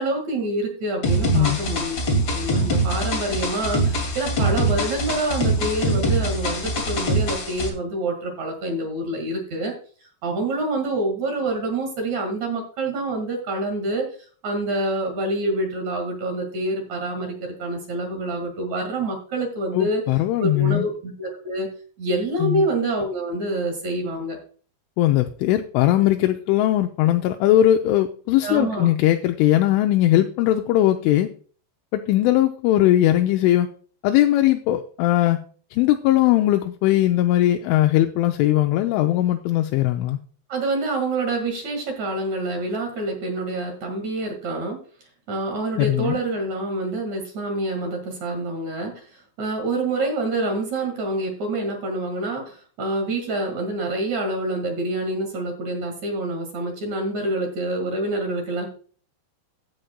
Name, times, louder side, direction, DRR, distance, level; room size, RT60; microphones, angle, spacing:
voice 1, 0.0-2.0 2.3-9.7 10.2-14.1 14.4-20.0 20.4-21.7 22.0-24.4 28.4-28.9 40.5-44.8 45.3-58.7, right 2 dB, 55° right, 2 dB, 2.1 m, -27 dB
sound 1, 1.0-7.7, right 1 dB, 45° left, 1.7 m, -23 dB
voice 2, 19.7-20.9 22.4-22.6 25.0-31.3 31.9-33.7 34.0-35.4 35.7-40.2 45.8-46.2, left 13 dB, 85° left, 5 dB, 2.9 m, -19 dB
15.5 x 7.8 x 2.2 m, 0.42 s
omnidirectional pair, 5.9 m